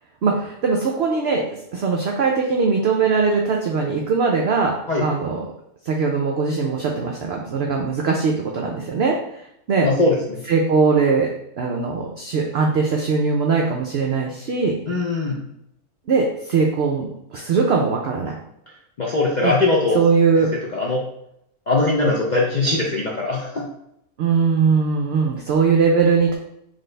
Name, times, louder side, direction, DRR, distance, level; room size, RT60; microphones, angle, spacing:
voice 1, 0.2-5.5 5.8-9.9 10.5-11.3 11.6-14.8 16.1-18.4 19.4-19.5 19.9-20.5 24.2-26.4, right 5 dB, 65° right, 1 dB, 0.6 m, -20 dB
voice 2, 9.8-10.4 14.9-15.4 19.0-20.0 20.3-20.4 20.7-21.0 21.7-23.6, left 2 dB, 65° left, -3 dB, 0.4 m, -21 dB
4.2 x 3.4 x 3.2 m, 0.78 s
omnidirectional pair, 1.6 m